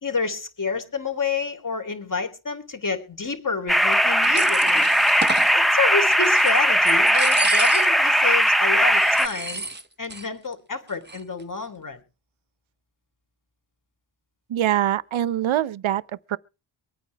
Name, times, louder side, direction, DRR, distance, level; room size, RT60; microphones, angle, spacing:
voice 1, 0.0-4.9 5.5-9.6 10.0-12.0, left 4 dB, 40° left, 3.2 m, -29 dB
sound 1, 3.7-9.3, equal, ahead, 0.7 m, -19 dB
sound 2, 3.9-5.5 6.1-6.6 6.9-8.1 8.4-8.5 8.9-10.3 10.5-10.6 10.9-11.4, right 3 dB, 20° right, 1.1 m, -32 dB
voice 2, 14.5-16.0 16.3-16.4, right 12 dB, 70° right, 0.7 m, -23 dB
24.0 x 9.2 x 3.4 m
wide cardioid pair, 95°, 50 cm